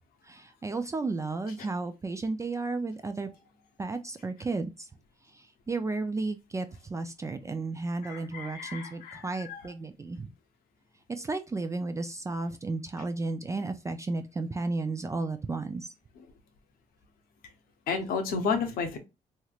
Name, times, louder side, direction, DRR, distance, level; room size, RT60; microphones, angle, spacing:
voice 1, 0.2-3.3 3.8-4.9 5.2-10.3 11.1-15.9, right 3 dB, 20° right, 0.4 m, -33 dB
voice 2, 8.0-9.6 16.2-16.3 17.9-19.0, left 5 dB, 80° left, 0.9 m, -32 dB
3.2 x 2.9 x 2.3 m
cardioid pair, 95°, 15 cm